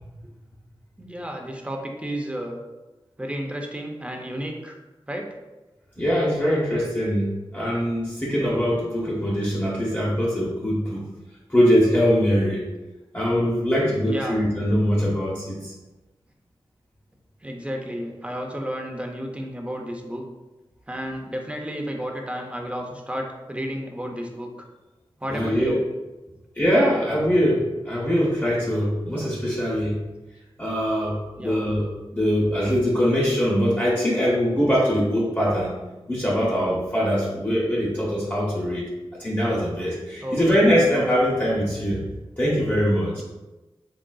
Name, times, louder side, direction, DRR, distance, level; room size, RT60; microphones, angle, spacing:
voice 1, 1.0-2.6 3.2-4.8 5.1-5.4 8.5-8.6 13.6-14.4 17.4-20.3 20.9-24.5 25.2-25.8 26.3-26.4 31.4-31.7 40.1-40.8, equal, 10° right, 1 dB, 0.6 m, -32 dB
voice 2, 6.0-11.0 11.5-12.7 13.1-15.7 25.3-25.8 26.5-30.0 30.6-31.9 32.1-35.7 36.1-38.9 39.2-42.1 42.4-43.2, equal, 20° left, -7 dB, 0.9 m, -22 dB
3.8 x 3.6 x 2.3 m, 1.1 s
wide cardioid pair, 70°, 10 cm